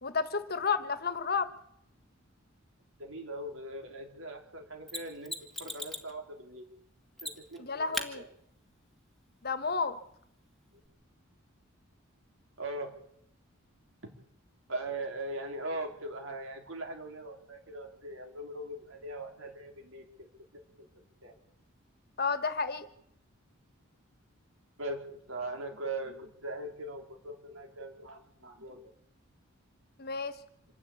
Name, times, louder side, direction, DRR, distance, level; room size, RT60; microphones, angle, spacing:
voice 1, 0.0-1.5 7.6-8.3 9.4-10.0 22.2-22.9 30.0-30.3, left 5 dB, 45° left, 12 dB, 1.5 m, -31 dB
voice 2, 3.0-6.7 7.2-8.3 12.6-12.9 14.0-14.1 14.7-20.3 20.8-20.9 21.2-21.3 24.8-25.0 25.3-28.9, right 2 dB, 70° right, 3 dB, 3.6 m, -40 dB
Mechanisms, 4.9-6.1 7.2-7.6 7.9-8.1 10.8-10.9, left 1 dB, ahead, 1.7 m, -38 dB
26.5 x 11.5 x 8.6 m, 0.73 s
head